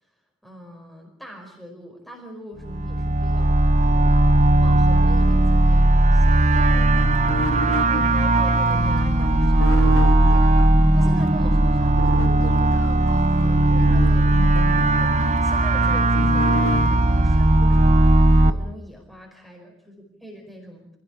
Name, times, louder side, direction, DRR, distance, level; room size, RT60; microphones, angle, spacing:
voice 1, 0.4-4.1 4.5-7.4 7.7-10.5 10.9-18.0 18.4-20.9, equal, ahead, 0 dB, 4.9 m, -42 dB
sound 1, 2.6-18.5, right 1 dB, 35° right, 1.1 m, -17 dB
sound 2, 6.5-11.3 12.0-16.9, left 1 dB, 90° left, 2.0 m, -31 dB
26.5 x 17.5 x 8.5 m, 0.73 s
head